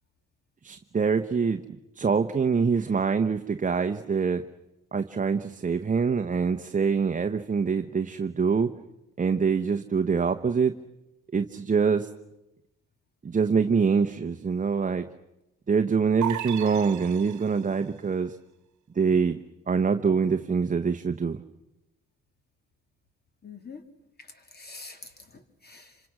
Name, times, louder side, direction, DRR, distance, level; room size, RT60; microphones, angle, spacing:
voice 1, 0.6-1.6 2.0-4.4 4.9-8.7 9.2-10.8 11.3-12.1 13.2-15.0 15.7-18.4 19.0-19.4 19.7-21.4, right 5 dB, 25° right, 7 dB, 1.0 m, -25 dB
sound 1, 16.2-17.8, right 12 dB, 70° right, 1.2 m, -35 dB
voice 2, 23.4-23.8 24.2-26.0, left 4 dB, 30° left, 6 dB, 3.2 m, -46 dB
27.0 x 26.5 x 6.2 m, 0.93 s
cardioid pair, 90°, 30 cm